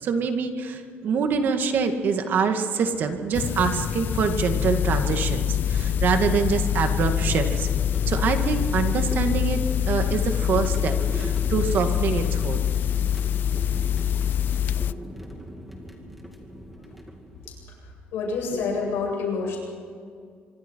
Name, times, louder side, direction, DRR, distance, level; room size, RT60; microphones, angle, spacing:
voice 1, 0.0-7.7 8.1-12.6, right 5 dB, 55° right, 6 dB, 2.1 m, -25 dB
sound 1, 2.7-17.7, equal, ahead, 2.6 m, -39 dB
sound 2, 3.3-14.9, left 10 dB, 55° left, 0.5 m, -25 dB
voice 2, 18.1-19.6, left 4 dB, 85° left, -1 dB, 8.0 m, -27 dB
25.5 x 24.0 x 4.7 m, 2.2 s
cardioid pair, 130°, 4 cm